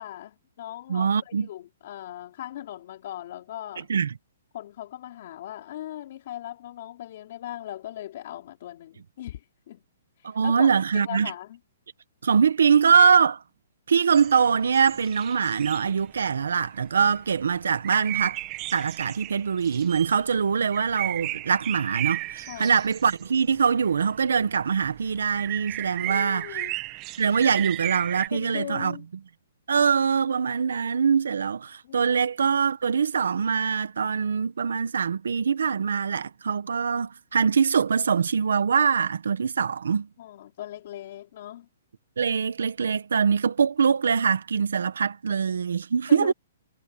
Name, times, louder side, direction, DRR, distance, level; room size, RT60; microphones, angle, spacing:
voice 1, 0.0-3.9 4.5-9.8 10.2-10.7 10.9-11.6 22.5-22.7 26.1-26.7 28.3-29.0 31.8-32.1 39.9-41.7 46.1-46.3, left 12 dB, 45° left, 3.6 m, -39 dB
voice 2, 0.9-1.5 3.9-4.1 10.2-11.3 12.2-13.4 13.9-18.4 18.7-26.5 27.2-29.0 29.7-40.1 42.2-46.3, right 6 dB, 85° right, 1.6 m, -23 dB
sound 1, 14.1-28.3, right 18 dB, 20° right, 1.5 m, -35 dB
hypercardioid pair, 165°, 0 cm